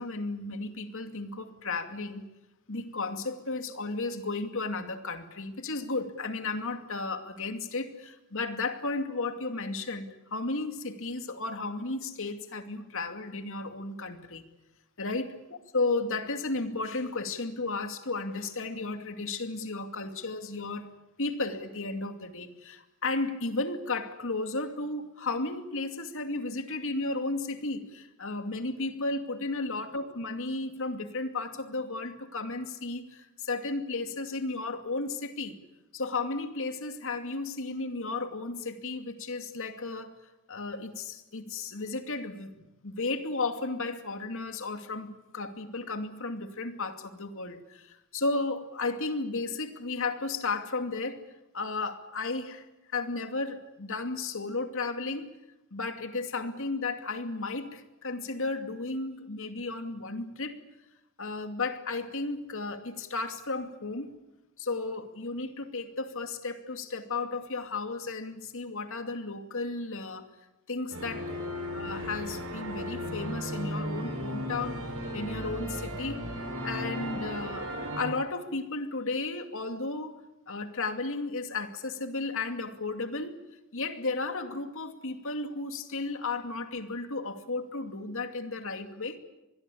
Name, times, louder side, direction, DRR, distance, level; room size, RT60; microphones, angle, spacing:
voice 1, 0.0-2.3 2.7-14.5 15.0-15.4 15.7-20.9 21.2-35.6 35.9-40.2 40.5-42.5 42.8-51.3 51.5-52.7 52.9-55.3 55.7-60.6 61.2-64.2 64.6-70.3 70.7-71.3 71.7-74.8 75.1-76.3 76.6-80.2 80.5-83.4 83.7-89.2, left 3 dB, 65° left, 7 dB, 2.5 m, -34 dB
sound 1, 70.9-78.1, equal, 70° right, 7.0 m, -35 dB
26.0 x 21.0 x 8.6 m, 0.97 s
head